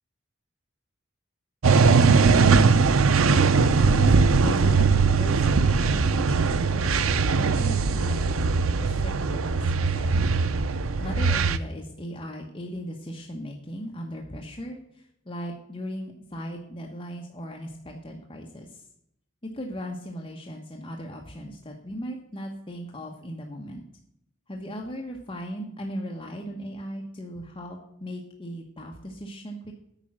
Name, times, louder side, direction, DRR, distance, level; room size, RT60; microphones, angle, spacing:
sound 1, 1.6-11.6, right 4 dB, 85° right, 0.6 m, -20 dB
voice 1, 3.2-4.9 5.2-8.3 8.8-10.4 11.0-18.8 19.4-23.8 24.5-29.7, equal, 25° left, 0 dB, 1.1 m, -37 dB
9.1 x 5.3 x 7.4 m, 0.76 s
head